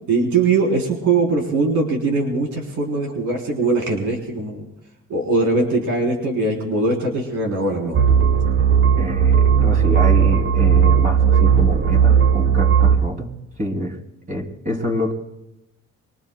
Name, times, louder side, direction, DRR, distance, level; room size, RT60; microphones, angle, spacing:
voice 1, 0.1-4.7 5.1-8.0, right 3 dB, 90° right, -1 dB, 3.9 m, -21 dB
sound 1, 7.9-13.0, right 7 dB, 45° right, 1.2 m, -16 dB
voice 2, 9.0-14.0 14.3-15.1, equal, 25° right, 0 dB, 2.9 m, -27 dB
25.5 x 23.5 x 2.3 m, 0.86 s
cardioid pair, 90°, 30 cm